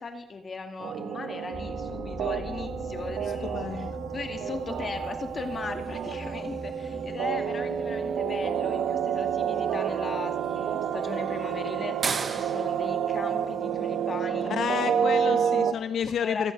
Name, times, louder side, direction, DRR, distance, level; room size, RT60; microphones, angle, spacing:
voice 1, 0.0-14.6 15.4-15.5 16.1-16.5, left 4 dB, 40° left, 7 dB, 2.1 m, -38 dB
sound 1, 0.8-15.7, right 8 dB, 70° right, 1.2 m, -29 dB
sound 2, 1.5-13.8 14.4-14.7 15.3-15.4 15.8-15.9, left 1 dB, 5° left, 2.2 m, -45 dB
voice 2, 3.4-3.9 14.5-16.5, left 8 dB, 65° left, 10 dB, 0.9 m, -30 dB
sound 3, 3.6-15.5, right 5 dB, 40° right, 1.2 m, -42 dB
25.0 x 8.6 x 6.6 m, 0.92 s
cardioid pair, 90°, 0 cm